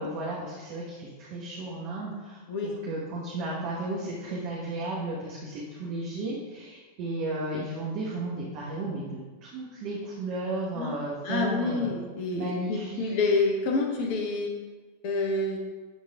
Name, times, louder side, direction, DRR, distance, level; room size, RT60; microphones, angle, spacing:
voice 1, 0.0-11.9 12.3-13.1, right 2 dB, 45° right, -5 dB, 1.4 m, -34 dB
voice 2, 11.2-14.5 15.0-15.6, left 3 dB, 45° left, 2 dB, 1.1 m, -28 dB
11.5 x 4.0 x 3.6 m, 1.3 s
figure-of-eight pair, 90°, 0 cm